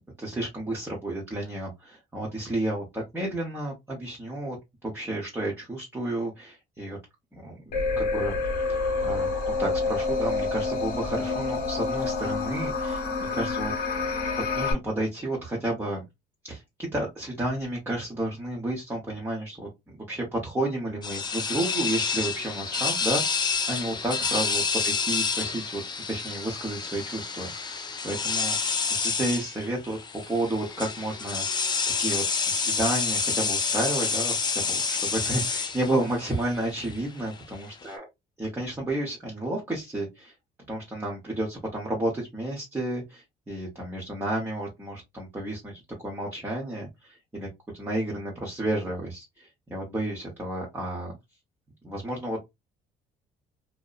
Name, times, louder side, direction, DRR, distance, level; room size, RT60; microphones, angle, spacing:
voice 1, 0.2-4.6 4.8-7.0 7.3-8.4 9.0-14.1 14.5-16.0 16.4-25.8 26.1-31.6 32.0-38.0 38.4-40.3 40.7-47.5 47.7-51.2 51.8-52.4, right 1 dB, 10° right, 0.9 m, -31 dB
sound 1, 7.7-14.7, left 4 dB, 65° left, 1.1 m, -28 dB
sound 2, 21.0-37.9, left 5 dB, 25° left, 0.5 m, -29 dB
2.7 x 2.2 x 2.4 m
cardioid pair, 110°, 17 cm